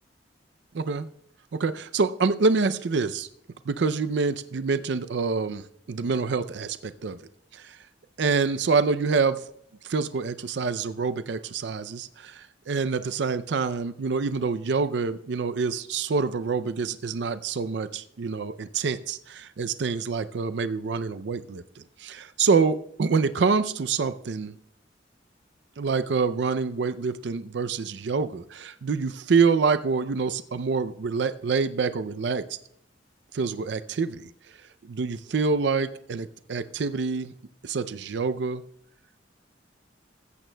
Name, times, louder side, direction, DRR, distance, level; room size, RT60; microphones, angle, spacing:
voice 1, 0.7-1.1 1.5-3.3 3.7-7.2 7.5-7.8 8.2-9.4 9.8-21.6 22.0-24.5 25.8-32.4 33.3-34.3 34.9-37.3 37.6-38.6, right 4 dB, 70° right, 13 dB, 0.5 m, -26 dB
15.5 x 14.0 x 2.2 m, 0.71 s
head